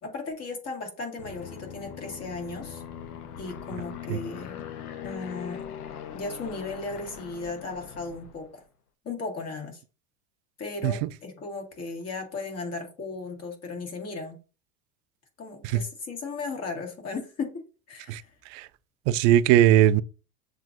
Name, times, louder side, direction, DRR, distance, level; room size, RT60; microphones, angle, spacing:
voice 1, 0.0-2.8 3.4-4.6 5.0-5.7 6.1-8.6 9.0-9.8 10.6-14.4 15.4-17.6 17.9-18.3, left 3 dB, 35° left, 1.9 m, -36 dB
Aircraft, 1.2-8.5, left 9 dB, 80° left, 0.9 m, -41 dB
voice 2, 19.1-20.0, right 12 dB, 50° right, 0.5 m, -20 dB
7.2 x 2.6 x 2.6 m
hypercardioid pair, 100°, 45 cm